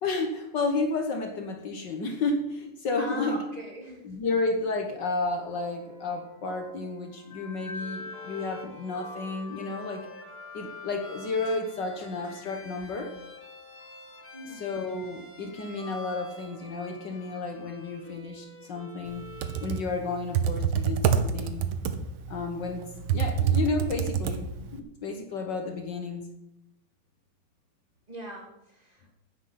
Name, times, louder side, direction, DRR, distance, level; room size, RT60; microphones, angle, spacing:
voice 1, 0.0-3.4 4.0-10.1 10.5-13.1 14.6-19.3 19.6-21.7 22.3-24.5 24.7-26.3, left 3 dB, 60° left, 4 dB, 1.8 m, -32 dB
voice 2, 3.0-4.0 14.3-14.7 28.1-29.1, equal, 20° right, -3 dB, 3.1 m, -40 dB
sound 1, 5.4-18.1, left 3 dB, 30° left, 1.7 m, -47 dB
Bowed string instrument, 7.8-19.9, left 1 dB, 10° left, 0.9 m, -49 dB
Computer keyboard, 19.2-24.8, right 7 dB, 90° right, 1.8 m, -27 dB
9.9 x 8.0 x 7.8 m, 0.89 s
omnidirectional pair, 2.3 m